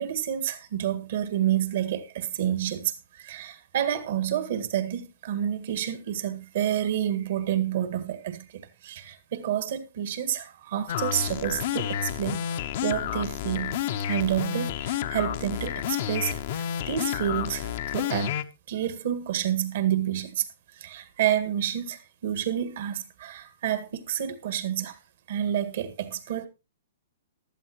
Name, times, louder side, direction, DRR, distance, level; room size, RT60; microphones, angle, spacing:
voice 1, 0.0-18.3 18.7-20.5 20.8-25.0 25.3-26.5, right 10 dB, 60° right, 1.9 m, -29 dB
sound 1, 10.9-18.4, left 10 dB, 55° left, 0.9 m, -30 dB
15.5 x 12.0 x 3.0 m
hypercardioid pair, 130°, 0 cm